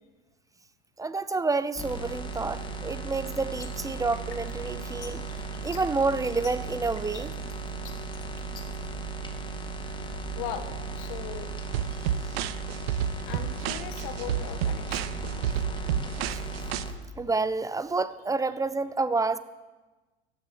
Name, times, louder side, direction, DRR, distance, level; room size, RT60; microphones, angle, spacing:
voice 1, 1.0-5.2 5.6-7.3 16.3-16.4 17.2-19.4, right 3 dB, 10° right, 15 dB, 0.7 m, -29 dB
sound 1, 1.8-16.9, right 3 dB, 15° left, 2.4 m, -36 dB
sound 2, 3.3-8.9, left 6 dB, 80° left, 2.0 m, -47 dB
voice 2, 10.4-10.7 10.9-11.5 11.8-12.1 13.3-15.2 16.4-16.6, left 9 dB, 60° left, 8 dB, 1.7 m, -39 dB
sound 3, 11.7-16.8, right 10 dB, 60° right, 0.8 m, -30 dB
15.0 x 9.8 x 9.9 m, 1.2 s
hypercardioid pair, 85°, 34 cm